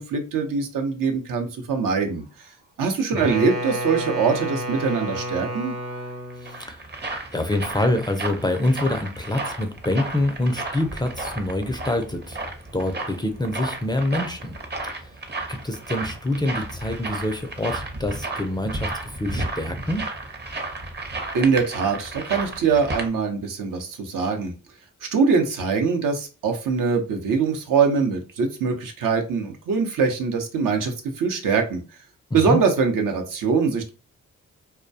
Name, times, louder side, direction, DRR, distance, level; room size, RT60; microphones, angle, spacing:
voice 1, 0.0-2.2 2.8-5.7 21.3-24.5 25.0-31.8 32.3-33.9, right 5 dB, 70° right, 4 dB, 0.7 m, -23 dB
Wind instrument woodwind instrument, 3.1-6.6, right 1 dB, 55° right, 1.0 m, -31 dB
sound 1, 6.1-23.1, right 2 dB, 30° right, 0.7 m, -33 dB
voice 2, 6.4-6.9 7.3-12.4 12.7-14.6 14.9-15.1 15.5-20.1 32.3-32.6, left 1 dB, 15° left, 5 dB, 0.4 m, -26 dB
2.2 x 2.1 x 2.6 m, 0.32 s
supercardioid pair, 45°, 34 cm